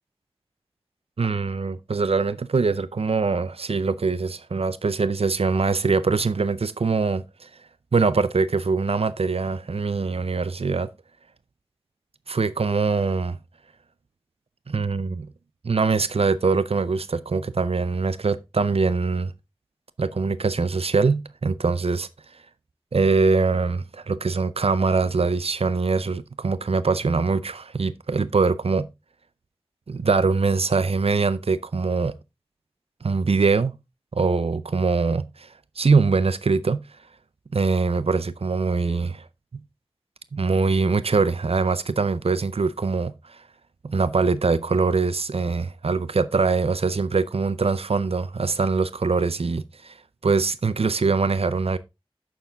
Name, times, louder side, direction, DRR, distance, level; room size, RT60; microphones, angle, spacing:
voice 1, 1.2-7.5 7.9-10.9 12.3-13.4 14.7-15.3 15.6-19.3 20.0-22.1 22.9-28.9 29.9-32.1 33.0-33.7 34.1-35.5 35.8-36.8 37.5-39.2 39.5-39.6 40.3-43.4 43.8-50.0 50.2-51.8, right 4 dB, 90° right, 0.5 m, -23 dB
9.3 x 6.8 x 3.6 m
wide cardioid pair, 50°, 10 cm